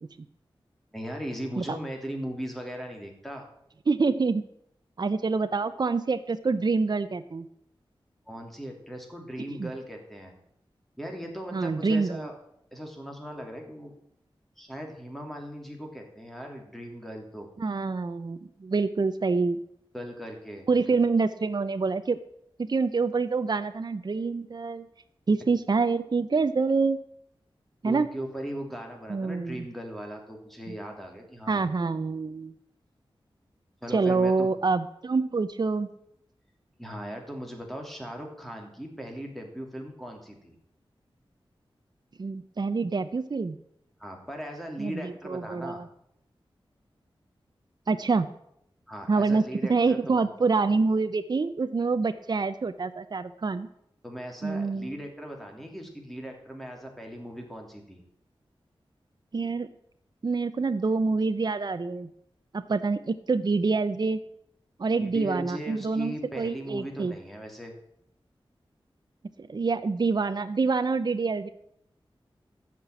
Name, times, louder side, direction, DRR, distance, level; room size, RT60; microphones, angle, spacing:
voice 1, 0.9-3.4 8.3-10.3 11.0-12.4 12.7-13.9 14.6-17.5 19.9-20.8 27.8-31.7 33.8-34.5 36.8-40.5 44.0-45.8 48.9-50.2 54.0-58.0 65.0-67.7, equal, ahead, 2 dB, 3.2 m, -38 dB
voice 2, 3.9-4.4 5.0-7.5 9.5-9.7 11.5-12.3 17.6-19.6 20.7-22.2 22.6-24.9 25.3-27.0 27.8-28.1 29.1-29.6 31.5-32.5 33.9-35.9 42.2-43.6 44.8-45.9 47.9-48.3 49.1-53.7 54.4-54.9 59.3-59.7 60.2-62.1 62.5-64.2 64.8-67.1 69.4-71.5, right 4 dB, 50° right, 10 dB, 0.7 m, -26 dB
14.0 x 6.0 x 8.9 m, 0.73 s
wide cardioid pair, 90°, 9 cm